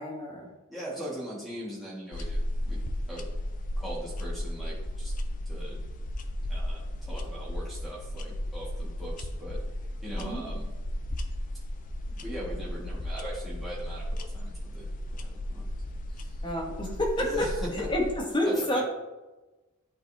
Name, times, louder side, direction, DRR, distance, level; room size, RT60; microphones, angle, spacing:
voice 1, 0.0-0.5 7.1-7.2 10.2-10.4 16.4-17.5 17.7-18.8, left 1 dB, 20° left, -1 dB, 1.2 m, -29 dB
voice 2, 0.7-2.8 3.1-3.2 3.8-5.1 5.4-5.8 6.5-9.6 10.0-10.6 12.1-15.6 16.1-16.4 17.2-17.9 18.4-18.8, equal, ahead, -8 dB, 1.6 m, -40 dB
sound 1, 2.1-18.2, left 1 dB, 40° left, 0.4 m, -35 dB
11.0 x 4.0 x 2.7 m, 1.1 s
head